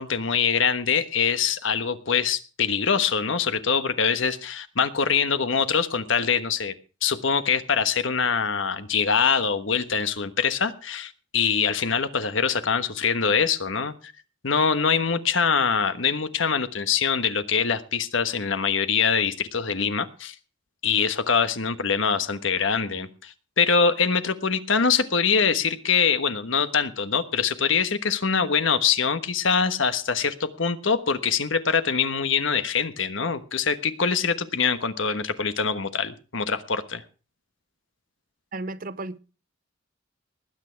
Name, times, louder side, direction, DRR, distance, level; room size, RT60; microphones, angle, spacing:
voice 1, 0.0-6.7 7.0-13.9 14.4-20.3 20.8-37.0, left 6 dB, 75° left, 1.3 m, -24 dB
voice 2, 38.5-39.2, right 2 dB, 45° right, 0.7 m, -33 dB
20.0 x 8.8 x 4.6 m
head